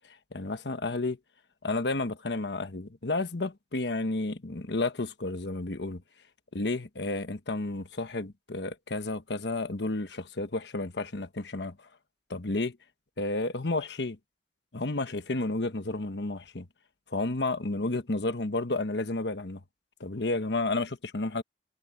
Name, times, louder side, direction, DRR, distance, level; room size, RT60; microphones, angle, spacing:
voice 1, 0.3-1.2 1.6-6.0 6.5-11.9 12.3-12.8 13.2-14.2 14.7-16.7 17.1-19.6 20.0-21.4, left 2 dB, 80° left, 1.2 m, -31 dB
head